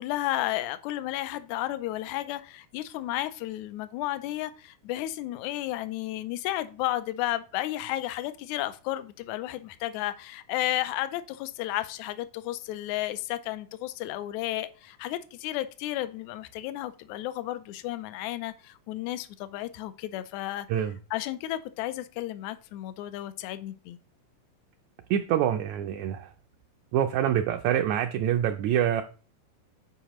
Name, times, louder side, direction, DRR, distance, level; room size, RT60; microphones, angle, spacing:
voice 1, 0.0-20.7 21.1-24.0, left 14 dB, 80° left, 1.8 m, -33 dB
voice 2, 25.1-26.3 26.9-29.0, right 10 dB, 80° right, 1.7 m, -25 dB
9.9 x 4.7 x 3.0 m
omnidirectional pair, 3.7 m